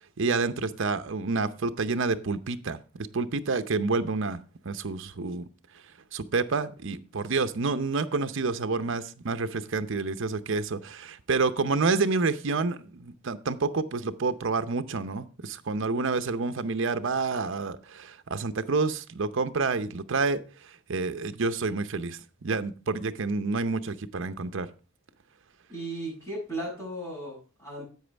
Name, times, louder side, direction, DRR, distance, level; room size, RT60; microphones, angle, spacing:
voice 1, 0.2-4.4 4.7-5.5 6.1-20.4 20.9-24.7, right 4 dB, 60° right, 0.7 m, -28 dB
voice 2, 25.7-27.8, right 1 dB, 15° left, 6.3 m, -36 dB
10.5 x 8.0 x 3.3 m
head